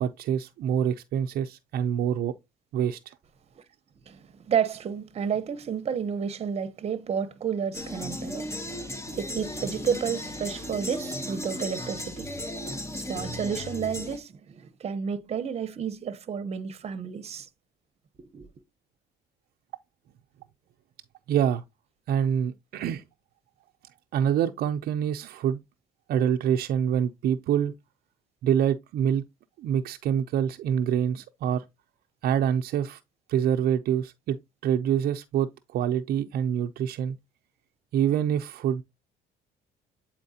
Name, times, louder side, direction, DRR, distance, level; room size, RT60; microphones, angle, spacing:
voice 1, 0.0-2.3 2.7-3.1 21.3-21.6 22.1-23.0 24.1-25.6 26.1-27.7 28.4-29.2 29.6-31.7 32.2-33.0 33.3-34.4 34.6-37.2 37.9-38.8, right 9 dB, 65° right, 0.5 m, -26 dB
voice 2, 4.1-8.5 9.1-12.3 12.9-17.5 18.3-18.5, right 7 dB, 40° right, 0.8 m, -31 dB
sound 1, 7.7-14.2, left 1 dB, 15° left, 1.0 m, -35 dB
8.4 x 4.3 x 2.7 m
cardioid pair, 110°, 17 cm